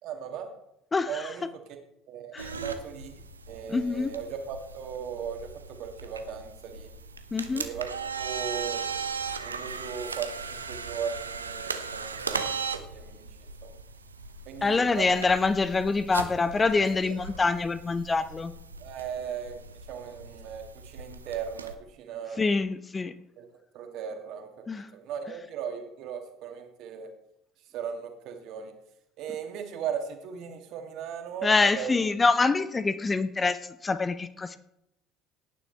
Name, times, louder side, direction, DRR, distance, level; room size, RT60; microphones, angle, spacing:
voice 1, 0.0-0.5 1.1-1.4 1.7-1.8 2.1-3.1 3.5-6.9 7.5-7.9 8.1-9.1 9.4-13.7 14.5-15.1 18.8-19.6 19.9-22.4 23.4-23.5 23.7-27.1 27.7-28.7 29.2-32.0, right 7 dB, 55° right, 4 dB, 2.3 m, -37 dB
voice 2, 0.9-1.3 2.3-2.5 3.7-4.1 7.3-7.6 14.6-18.5 22.4-23.2 24.7-24.9 31.4-34.6, left 4 dB, 25° left, 12 dB, 0.9 m, -25 dB
sound 1, 2.4-21.8, right 5 dB, 85° right, 0.8 m, -38 dB
18.0 x 9.8 x 3.5 m, 0.80 s
figure-of-eight pair, 60°, 0 cm